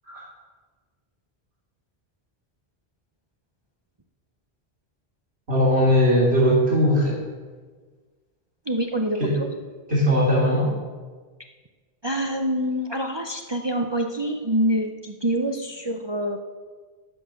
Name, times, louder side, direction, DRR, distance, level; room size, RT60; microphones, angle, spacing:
voice 1, 5.5-7.2 9.2-9.4 9.9-10.7, equal, 90° right, -6 dB, 3.3 m, -19 dB
voice 2, 8.7-9.5 12.0-16.4, right 1 dB, 30° right, 3 dB, 0.7 m, -26 dB
13.5 x 7.8 x 6.4 m, 1.4 s
omnidirectional pair, 1.0 m